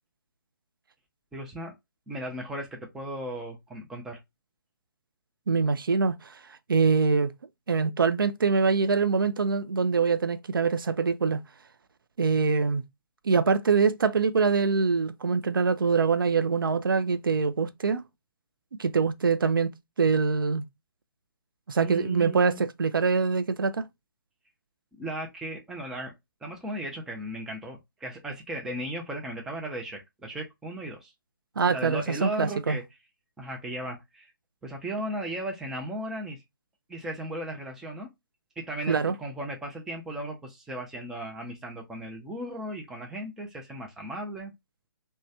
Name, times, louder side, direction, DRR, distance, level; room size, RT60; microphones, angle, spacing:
voice 1, 1.3-1.7 2.1-4.2 21.8-22.6 25.0-26.1 26.4-31.1 31.7-32.8 33.4-34.3 34.6-36.4 36.9-38.1 38.7-44.5, right 1 dB, 5° right, 0.5 m, -36 dB
voice 2, 5.5-6.4 6.7-7.3 7.7-11.4 12.2-12.8 13.2-18.0 18.8-19.7 20.0-20.6 21.7-23.9 31.6-32.8 38.9-39.1, right 5 dB, 70° right, 0.4 m, -24 dB
3.0 x 2.2 x 2.6 m
figure-of-eight pair, 135°, 12 cm